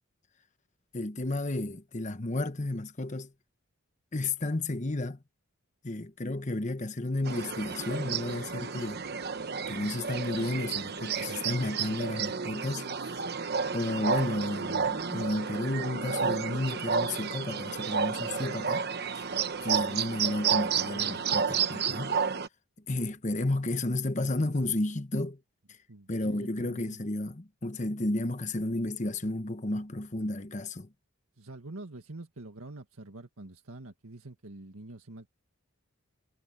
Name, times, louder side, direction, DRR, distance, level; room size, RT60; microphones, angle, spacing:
voice 1, 0.9-3.3 4.1-5.2 5.8-9.0 9.7-12.9 13.7-18.9 19.1-19.2 19.6-22.2 22.9-25.4 26.1-30.9, left 2 dB, 35° left, 1.1 m, -32 dB
sound 1, 7.2-22.5, right 6 dB, 45° right, 1.0 m, -31 dB
voice 2, 18.2-18.5 25.9-27.0 31.4-35.3, right 2 dB, 85° right, 1.8 m, -46 dB
head